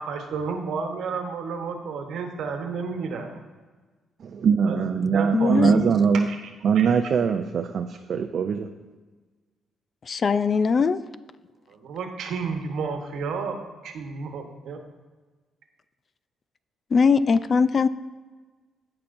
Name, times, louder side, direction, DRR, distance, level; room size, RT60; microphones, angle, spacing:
voice 1, 0.0-3.4 4.7-4.8 5.0-6.9 11.7-14.8, right 5 dB, 75° right, 4 dB, 1.1 m, -32 dB
voice 2, 4.2-6.3 6.6-8.7, right 6 dB, 60° right, 6 dB, 0.4 m, -22 dB
voice 3, 5.3-5.8 10.1-11.0 16.9-17.9, left 5 dB, 45° left, 15 dB, 0.3 m, -20 dB
15.5 x 5.8 x 2.6 m, 1.3 s
cardioid pair, 90°, 0 cm